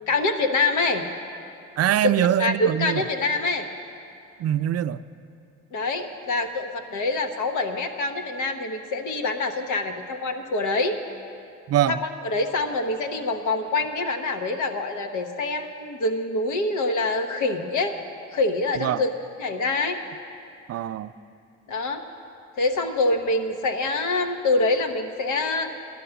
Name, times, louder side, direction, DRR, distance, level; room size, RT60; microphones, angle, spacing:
voice 1, 0.1-1.0 2.0-2.1 2.4-3.7 5.7-11.0 11.9-17.9 18.3-20.0 21.7-22.0 22.6-25.7, left 2 dB, 85° left, 6 dB, 1.1 m, -25 dB
voice 2, 1.8-3.0 4.4-5.0 11.7-12.0 18.8-19.0 20.7-21.1, right 11 dB, 55° right, 13 dB, 0.4 m, -23 dB
11.5 x 11.0 x 6.9 m, 2.6 s
cardioid pair, 90°, 30 cm